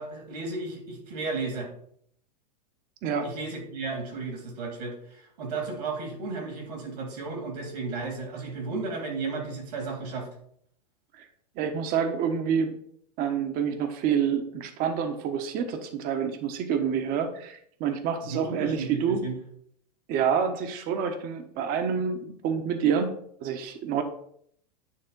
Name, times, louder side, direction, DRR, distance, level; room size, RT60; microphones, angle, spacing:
voice 1, 0.0-1.7 3.2-10.3 18.2-19.4, right 3 dB, 70° right, 2 dB, 3.0 m, -34 dB
voice 2, 11.6-12.8 13.2-19.2 20.1-24.0, right 7 dB, 45° right, 7 dB, 1.2 m, -28 dB
9.6 x 3.5 x 5.2 m, 0.66 s
hypercardioid pair, 115°, 21 cm